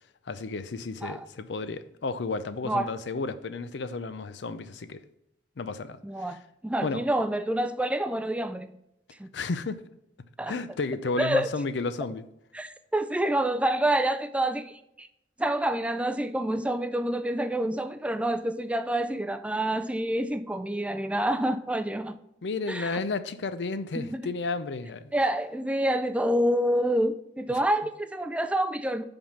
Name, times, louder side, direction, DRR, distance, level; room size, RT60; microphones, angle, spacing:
voice 1, 0.3-5.0 5.6-6.4 6.8-7.0 9.3-9.8 10.5-12.2 22.4-25.1, left 3 dB, 80° left, 0.5 m, -32 dB
voice 2, 6.0-8.7 9.2-9.3 10.4-10.5 11.2-11.5 12.5-14.7 15.0-15.1 15.4-22.2 22.7-23.0 24.0-24.3 25.1-29.0, right 1 dB, 5° right, 0.3 m, -27 dB
5.6 x 5.2 x 5.9 m
head